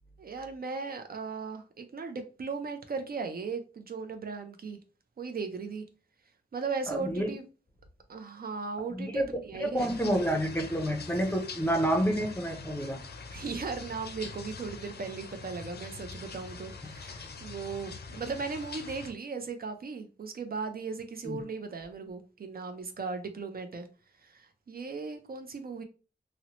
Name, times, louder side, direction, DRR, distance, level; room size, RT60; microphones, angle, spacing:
voice 1, 0.2-4.8 5.2-5.8 6.5-7.5 8.1-9.9 13.3-23.9 24.2-25.8, right 4 dB, 60° right, 0.4 m, -37 dB
voice 2, 6.9-7.3 8.9-9.3 9.5-13.0 21.2-21.4, right 1 dB, 10° left, 0.5 m, -29 dB
sound 1, 9.8-19.1, left 4 dB, 70° left, 0.4 m, -44 dB
2.7 x 2.0 x 2.8 m
wide cardioid pair, 105°, 17 cm